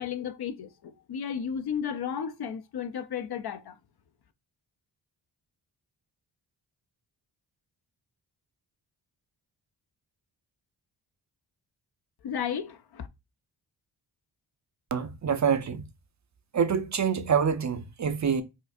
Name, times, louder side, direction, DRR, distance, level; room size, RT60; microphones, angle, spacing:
voice 1, 0.0-3.7 12.2-13.1, left 8 dB, 60° left, 0.5 m, -33 dB
voice 2, 14.9-15.8 16.5-18.4, right 7 dB, 40° right, 0.5 m, -26 dB
4.5 x 2.4 x 2.5 m
wide cardioid pair, 95°, 45 cm